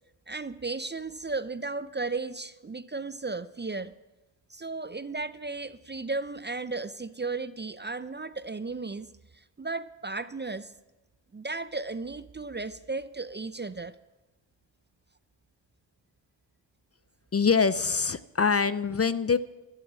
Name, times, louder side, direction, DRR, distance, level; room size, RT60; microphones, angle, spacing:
voice 1, 0.3-3.9 4.5-9.1 9.3-10.7 11.3-13.9, right 3 dB, 20° right, 14 dB, 0.6 m, -35 dB
voice 2, 17.3-19.4, left 5 dB, 30° left, 15 dB, 0.7 m, -24 dB
12.5 x 12.0 x 7.5 m, 1.0 s
supercardioid pair, 45°, 49 cm